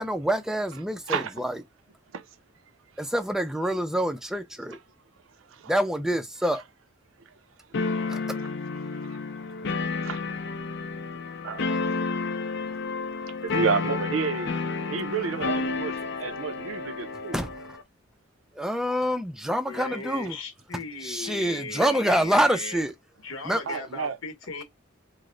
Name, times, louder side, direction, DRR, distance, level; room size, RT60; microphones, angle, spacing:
voice 1, 0.0-1.5 3.0-4.8 5.7-6.6 8.1-8.4 17.3-17.5 18.6-20.4 21.0-22.9 23.5-23.6, equal, 5° right, 0.3 m, -26 dB
voice 2, 1.1-1.4 2.1-2.4 3.0-3.1 5.4-5.7 6.4-6.5 7.2-7.3 8.4-8.5 9.0-9.8 10.0-10.2 11.4-12.2 12.6-12.7 13.3-14.5 14.9-17.5 23.7-24.2, right 5 dB, 85° right, 0.5 m, -32 dB
sound 1, 7.7-17.8, left 4 dB, 60° left, 0.5 m, -31 dB
voice 3, 19.6-22.8 23.2-24.6, left 4 dB, 85° left, 1.0 m, -37 dB
3.1 x 2.0 x 3.7 m
head